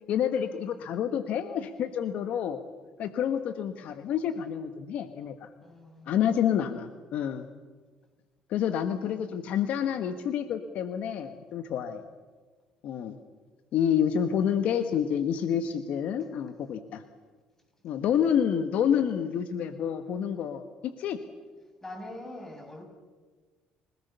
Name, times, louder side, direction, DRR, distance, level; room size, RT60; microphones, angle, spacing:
voice 1, 0.1-2.6 3.0-5.5 6.1-7.5 8.5-12.0 12.8-13.2 13.7-17.0 17.8-21.2, left 8 dB, 65° left, 9 dB, 1.4 m, -28 dB
voice 2, 5.6-6.5 21.8-22.8, left 1 dB, 15° left, 3 dB, 6.5 m, -43 dB
29.5 x 18.0 x 6.9 m, 1.4 s
cardioid pair, 110°, 3 cm